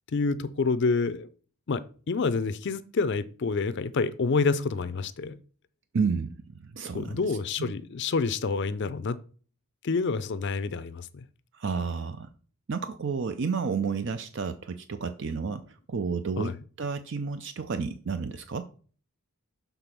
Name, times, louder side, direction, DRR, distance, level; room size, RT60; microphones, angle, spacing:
voice 1, 0.1-1.3 1.7-5.4 6.9-9.2 9.8-11.2 16.4-16.5, left 4 dB, 50° left, 0.5 m, -28 dB
voice 2, 5.9-7.7 11.5-12.3 12.7-18.7, right 5 dB, 55° right, 0.5 m, -31 dB
6.9 x 3.9 x 5.9 m
head